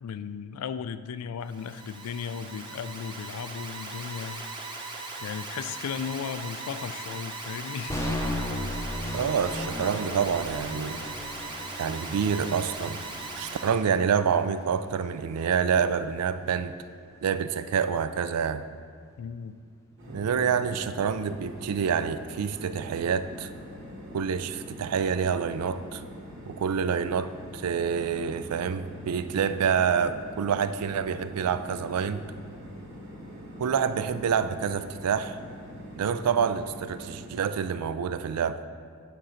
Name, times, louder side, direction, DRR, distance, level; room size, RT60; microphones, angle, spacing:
voice 1, 0.0-4.9 5.2-8.1 19.2-19.5, left 7 dB, 80° left, 13 dB, 0.3 m, -36 dB
Alarm, 1.4-13.8, right 3 dB, 20° right, 0.8 m, -39 dB
sound 1, 7.9-15.9, left 1 dB, 15° left, 0.5 m, -36 dB
voice 2, 9.1-11.0 11.8-13.0 13.4-16.7 17.2-18.6 20.1-23.5 24.1-26.0 26.5-32.3 33.6-35.4 36.0-38.6, right 7 dB, 90° right, 12 dB, 0.4 m, -27 dB
sound 2, 20.0-37.2, equal, 55° right, 2.0 m, -44 dB
9.0 x 3.8 x 5.6 m, 2.1 s
head